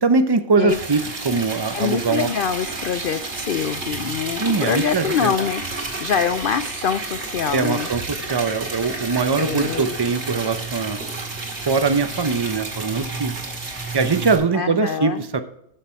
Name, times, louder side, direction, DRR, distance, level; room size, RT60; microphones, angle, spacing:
voice 1, 0.0-2.3 4.4-5.3 7.5-11.0 11.7-13.4 13.9-15.4, right 4 dB, 25° right, 10 dB, 0.6 m, -21 dB
Liquid, 0.7-14.4, right 3 dB, 50° right, 2.4 m, -31 dB
voice 2, 1.7-7.9 9.4-9.9 14.5-15.2, left 7 dB, 65° left, 12 dB, 0.5 m, -25 dB
13.5 x 6.6 x 4.5 m, 0.76 s
omnidirectional pair, 1.5 m